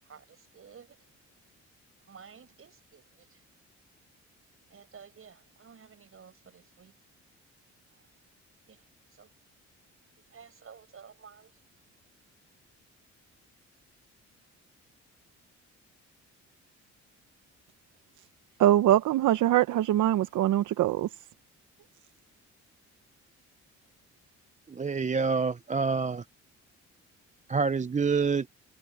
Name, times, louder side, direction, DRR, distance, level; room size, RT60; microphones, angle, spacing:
voice 1, 0.0-1.1 2.1-3.4 4.7-7.0 7.9-8.0 8.7-8.8 9.1-9.3 10.3-11.6, right 6 dB, 45° right, 7.1 m, -53 dB
voice 2, 18.6-21.3, right 13 dB, 80° right, 0.9 m, -23 dB
voice 3, 24.7-26.2 27.5-28.5, right 5 dB, 25° right, 0.7 m, -27 dB
cardioid pair, 90°, 30 cm